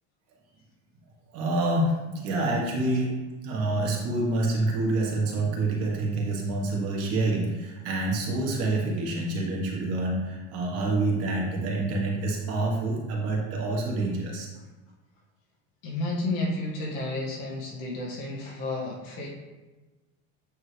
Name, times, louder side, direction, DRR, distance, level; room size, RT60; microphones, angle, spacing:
voice 1, 1.3-3.2 3.4-14.5, right 2 dB, 45° right, -2 dB, 1.5 m, -27 dB
voice 2, 15.8-19.3, left 2 dB, 65° left, -3 dB, 1.9 m, -31 dB
8.5 x 3.6 x 3.3 m, 1.2 s
cardioid pair, 175°, 32 cm